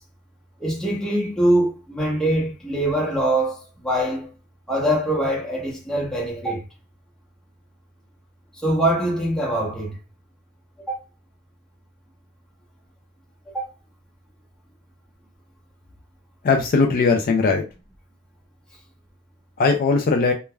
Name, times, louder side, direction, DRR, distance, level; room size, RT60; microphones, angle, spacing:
voice 1, 0.6-4.3 4.7-6.6 8.6-10.0 10.8-11.0 13.5-13.6, right 1 dB, 5° left, 0.8 m, -23 dB
voice 2, 16.4-17.6 19.6-20.3, left 4 dB, 45° left, 0.4 m, -19 dB
3.2 x 2.2 x 2.2 m
head